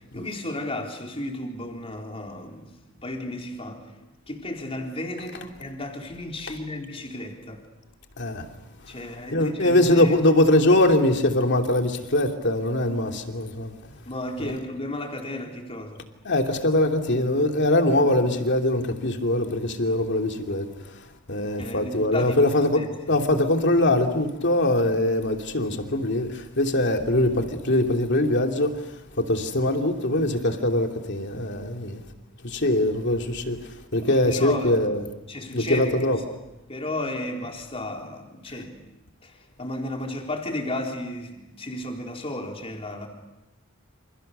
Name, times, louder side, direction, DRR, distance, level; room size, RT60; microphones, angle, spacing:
voice 1, 0.1-2.7 3.0-3.8 4.3-7.6 8.9-10.1 13.9-16.0 21.6-22.5 22.7-23.2 34.0-34.8 35.3-36.0 36.7-38.8 39.2-39.3 39.6-43.1, left 1 dB, 30° left, 4.1 m, -33 dB
voice 2, 9.3-13.7 14.4-14.5 16.2-21.0 21.3-32.0 32.4-35.0 35.5-36.2, left 1 dB, 55° left, 2.8 m, -22 dB
28.5 x 28.0 x 6.9 m
head